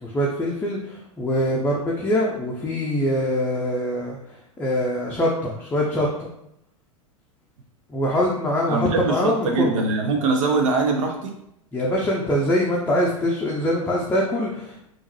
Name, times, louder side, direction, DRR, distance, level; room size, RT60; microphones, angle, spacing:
voice 1, 0.0-6.3 7.9-9.7 11.7-14.9, equal, 10° left, -4 dB, 0.6 m, -24 dB
voice 2, 8.7-11.3, right 3 dB, 65° right, 3 dB, 0.6 m, -22 dB
3.5 x 2.5 x 3.1 m, 0.78 s
hypercardioid pair, 100°, 18 cm